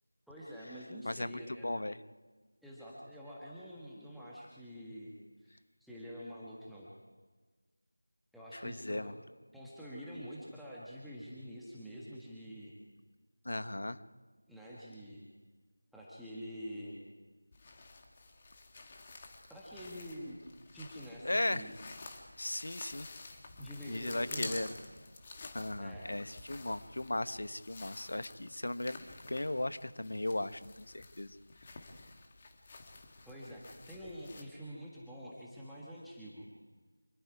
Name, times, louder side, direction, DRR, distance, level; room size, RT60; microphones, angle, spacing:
voice 1, 0.3-1.7 2.6-6.9 8.3-9.2 9.5-12.7 14.5-15.3 15.9-17.0 19.5-20.4 20.7-21.7 23.6-24.9 25.8-26.1 33.2-36.5, equal, ahead, -9 dB, 1.5 m, -47 dB
voice 2, 1.0-2.0 8.5-9.1 13.4-14.0 21.2-21.7 22.4-23.1 23.9-24.7 25.5-29.0 29.3-31.3, left 1 dB, 55° left, 13 dB, 1.1 m, -37 dB
sound 1, 17.5-34.4, left 3 dB, 20° left, 2.2 m, -50 dB
26.5 x 21.0 x 4.8 m, 1.4 s
figure-of-eight pair, 170°, 0 cm